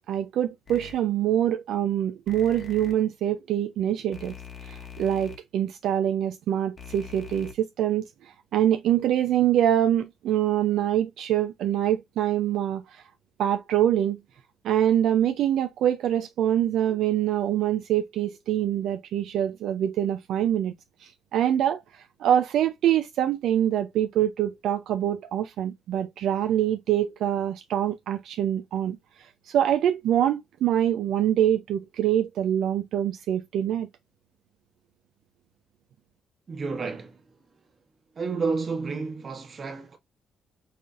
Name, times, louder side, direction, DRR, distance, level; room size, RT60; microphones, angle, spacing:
voice 1, 0.1-4.3 4.6-13.0 13.4-14.2 14.6-20.7 21.0-33.9, right 11 dB, 80° right, 0.4 m, -25 dB
sound 1, 0.7-0.9 2.3-2.9 4.1-5.4 6.8-7.5, left 7 dB, 40° left, 1.1 m, -42 dB
voice 2, 36.5-37.3 38.1-40.0, right 4 dB, 45° right, 1.3 m, -30 dB
5.5 x 2.5 x 2.4 m
cardioid pair, 90°, 0 cm